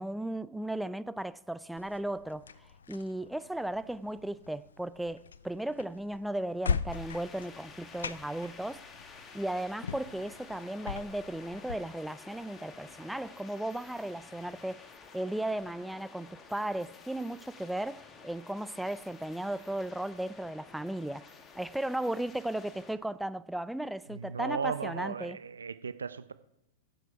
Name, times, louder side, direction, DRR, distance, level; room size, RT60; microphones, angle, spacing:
voice 1, 0.0-2.5 2.9-8.9 9.3-21.3 21.5-25.4, right 1 dB, 5° right, 0.4 m, -36 dB
sound 1, 1.8-11.8, left 6 dB, 75° left, 0.5 m, -40 dB
sound 2, 6.9-23.0, left 5 dB, 25° left, 1.3 m, -52 dB
voice 2, 24.1-26.3, right 6 dB, 80° right, 0.5 m, -36 dB
18.0 x 8.0 x 4.8 m
figure-of-eight pair, 95°, 0 cm